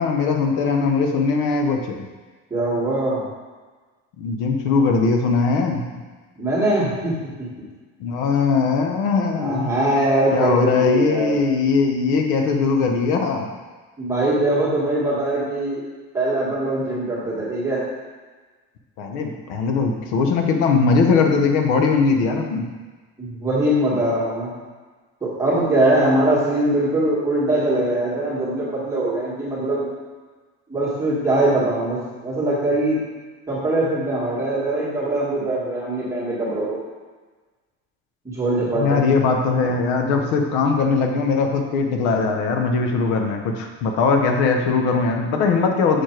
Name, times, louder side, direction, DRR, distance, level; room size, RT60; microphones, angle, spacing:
voice 1, 0.0-2.0 4.2-5.8 8.0-9.7 10.3-13.5 19.0-22.7 38.8-46.0, left 4 dB, 85° left, 3 dB, 1.0 m, -20 dB
voice 2, 2.5-3.2 6.4-7.5 9.4-11.4 14.0-15.8 16.1-17.8 23.2-24.5 25.2-29.9 30.7-33.0 33.5-36.8 38.2-39.0 39.6-39.8, right 1 dB, 10° right, -8 dB, 1.5 m, -22 dB
6.5 x 4.8 x 4.5 m, 1.3 s
cardioid pair, 180°, 29 cm